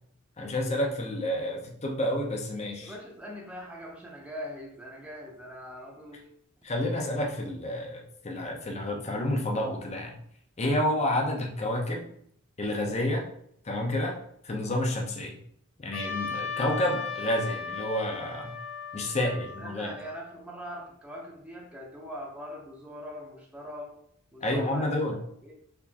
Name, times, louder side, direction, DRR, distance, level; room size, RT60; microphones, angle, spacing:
voice 1, 0.4-2.9 6.6-10.1 10.6-12.1 12.6-13.2 13.6-14.2 14.4-15.4 15.8-18.5 18.9-19.9 24.4-25.2, left 1 dB, 30° left, 1 dB, 0.7 m, -29 dB
voice 2, 2.8-6.3 19.1-23.9 24.3-25.0 25.4-25.5, equal, 5° right, -3 dB, 0.7 m, -42 dB
Trumpet, 15.9-20.4, left 5 dB, 65° left, 0.7 m, -37 dB
4.3 x 3.1 x 2.8 m, 0.68 s
head